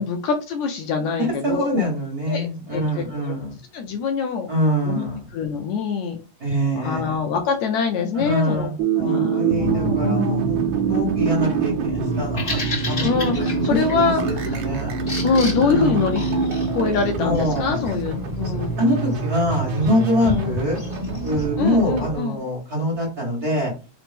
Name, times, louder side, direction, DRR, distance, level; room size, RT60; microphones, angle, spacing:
voice 1, 0.0-1.8 2.3-3.4 3.7-4.5 4.8-5.1 5.3-6.2 6.5-8.7 9.0-10.5 12.7-14.6 15.2-16.2 16.7-18.7 20.2-20.6 21.6-22.4, left 5 dB, 75° left, 4 dB, 1.8 m, -25 dB
voice 2, 1.4-3.6 4.5-5.2 6.4-7.2 8.1-10.6 10.9-12.6 12.9-13.1 13.3-14.1 14.5-14.9 15.7-15.9 16.2-16.4 17.2-17.7 18.8-20.8 21.2-23.7, equal, 30° right, -3 dB, 2.2 m, -24 dB
sound 1, 8.8-17.8, right 6 dB, 85° right, 2.1 m, -25 dB
sound 2, 9.5-22.2, right 2 dB, 65° right, 1.6 m, -29 dB
Bird vocalization bird call bird song, 12.1-21.5, left 2 dB, 30° left, 1.6 m, -35 dB
4.9 x 3.0 x 3.5 m, 0.33 s
omnidirectional pair, 3.5 m